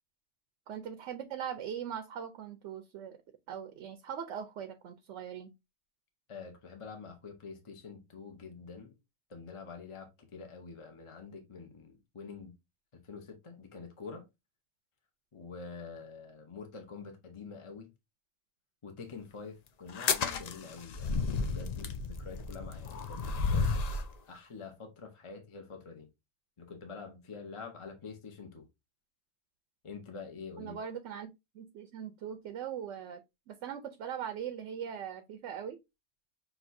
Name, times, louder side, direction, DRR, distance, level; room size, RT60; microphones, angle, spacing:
voice 1, 0.7-3.2 3.5-5.5 30.6-31.3 31.5-33.2 33.5-35.8, right 8 dB, 80° right, 0.9 m, -40 dB
voice 2, 6.3-9.0 9.3-12.5 12.9-14.2 15.3-17.9 18.8-23.8 24.2-26.1 26.6-28.7 29.8-30.8, left 5 dB, 30° left, 0.7 m, -46 dB
sound 1, 19.9-24.1, left 4 dB, 55° left, 0.4 m, -32 dB
6.1 x 2.7 x 2.6 m
omnidirectional pair, 1.2 m